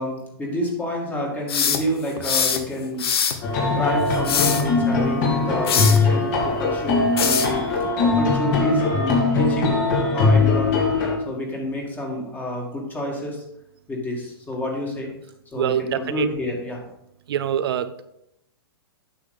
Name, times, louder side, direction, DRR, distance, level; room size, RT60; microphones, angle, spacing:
voice 1, 0.0-9.8 10.1-10.9 11.2-13.4 13.9-15.1 15.5-16.8, left 1 dB, 15° left, 0 dB, 2.0 m, -29 dB
sound 1, 1.5-2.6 3.0-3.4 4.1-4.6 5.7-6.0 7.2-7.5, left 7 dB, 70° left, 1.2 m, -22 dB
sound 2, 3.4-11.2, left 3 dB, 50° left, 3.0 m, -21 dB
voice 2, 15.6-16.3 17.3-17.9, right 9 dB, 70° right, 11 dB, 0.6 m, -24 dB
9.2 x 6.1 x 3.8 m, 0.79 s
hypercardioid pair, 135°, 13 cm